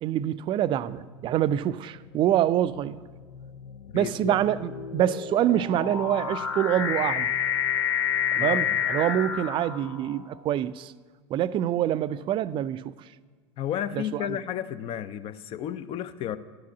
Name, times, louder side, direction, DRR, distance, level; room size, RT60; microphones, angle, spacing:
voice 1, 0.0-3.0 3.9-7.3 8.3-10.9 11.3-12.9 13.9-14.4, right 11 dB, 35° right, 0.4 m, -26 dB
sound 1, 0.9-1.3 2.1-10.3, left 8 dB, 85° left, 0.7 m, -30 dB
voice 2, 3.9-4.4 8.4-8.8 13.6-16.4, left 10 dB, 40° left, 0.5 m, -32 dB
11.0 x 4.8 x 7.2 m
hypercardioid pair, 80°, 14 cm